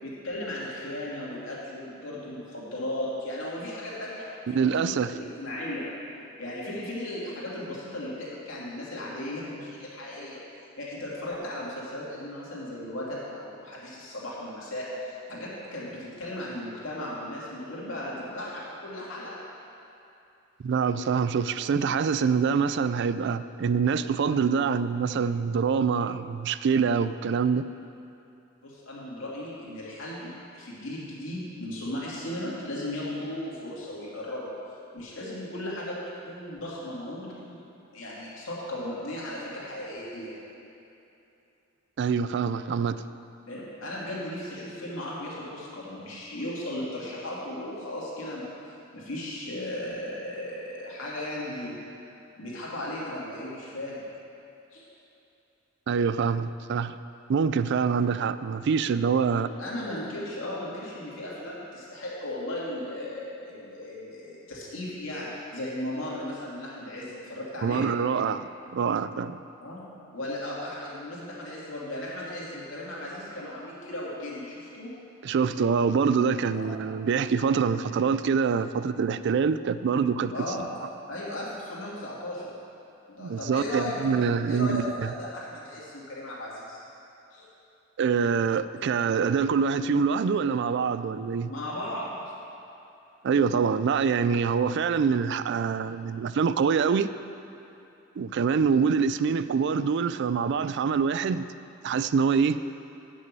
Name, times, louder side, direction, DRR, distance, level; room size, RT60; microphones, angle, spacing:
voice 1, 0.0-5.9 6.4-10.4 10.8-19.4 28.6-34.5 34.9-36.0 36.2-37.6 37.9-40.3 43.5-48.5 48.9-51.8 52.4-54.0 54.7-54.9 59.3-67.8 69.6-69.8 70.1-74.9 76.5-76.7 80.3-80.7 81.1-82.6 83.1-86.8 87.3-87.5 91.4-92.2, left 1 dB, 70° left, -6 dB, 2.7 m, -36 dB
voice 2, 4.5-5.1 20.6-27.7 42.0-43.0 55.9-57.0 57.3-59.5 67.6-69.4 75.2-80.3 83.2-85.1 88.0-91.5 93.2-97.1 98.2-101.5 101.8-102.6, right 6 dB, 60° right, 13 dB, 0.3 m, -25 dB
9.2 x 6.4 x 7.5 m, 2.8 s
head